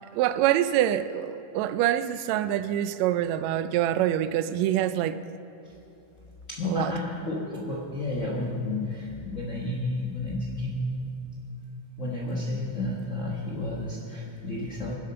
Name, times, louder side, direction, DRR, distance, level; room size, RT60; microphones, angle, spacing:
voice 1, 0.1-5.2 6.6-6.9, right 12 dB, 80° right, 13 dB, 1.6 m, -25 dB
voice 2, 6.5-11.2 12.0-14.9, left 1 dB, 70° left, -4 dB, 0.7 m, -31 dB
21.5 x 7.8 x 5.6 m, 2.9 s
omnidirectional pair, 3.5 m